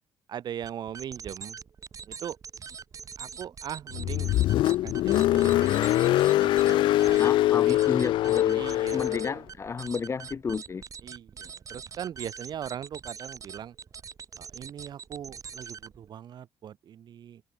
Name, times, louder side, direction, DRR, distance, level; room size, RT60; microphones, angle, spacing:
voice 1, 0.3-1.6 2.1-2.4 3.2-4.3 4.7-7.3 7.7-7.8 8.5-9.4 11.0-13.8 14.4-17.4, right 9 dB, 60° right, 2.0 m, -40 dB
sound 1, 0.6-16.1, right 6 dB, 45° right, 6.2 m, -43 dB
Car, 3.9-9.4, left 15 dB, 85° left, 1.1 m, -23 dB
voice 2, 7.2-8.6 8.9-10.8, left 5 dB, 35° left, 1.7 m, -31 dB
cardioid pair, 105°, 8 cm